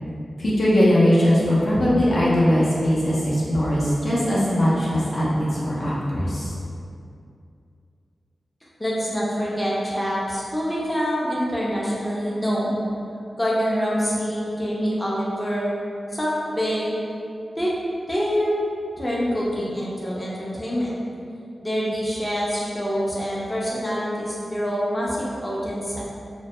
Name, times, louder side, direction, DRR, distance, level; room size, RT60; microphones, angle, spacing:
voice 1, 0.4-6.5, equal, 65° left, -8 dB, 0.6 m, -20 dB
voice 2, 8.8-12.8 13.4-15.8 16.1-17.0 17.6-17.7 18.1-18.5 19.0-21.0 21.6-26.1, equal, 15° left, -6 dB, 0.5 m, -25 dB
2.1 x 2.1 x 2.8 m, 2.5 s
cardioid pair, 55°, 0 cm